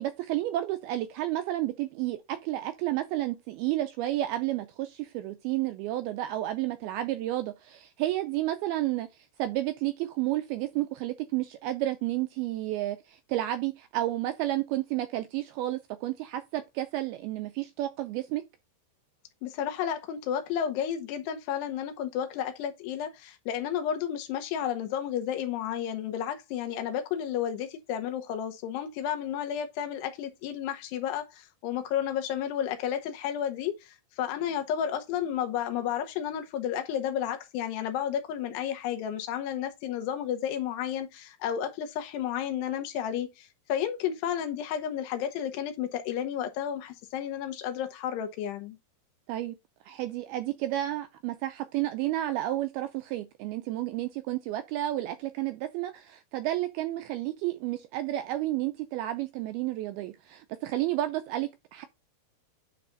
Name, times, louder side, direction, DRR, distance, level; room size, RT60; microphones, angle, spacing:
voice 1, 0.0-9.1 9.4-18.4 49.3-49.6 49.9-61.9, right 15 dB, 85° right, 2.2 m, -31 dB
voice 2, 19.4-48.8, left 9 dB, 80° left, 3.0 m, -32 dB
9.3 x 3.4 x 3.8 m
omnidirectional pair, 4.9 m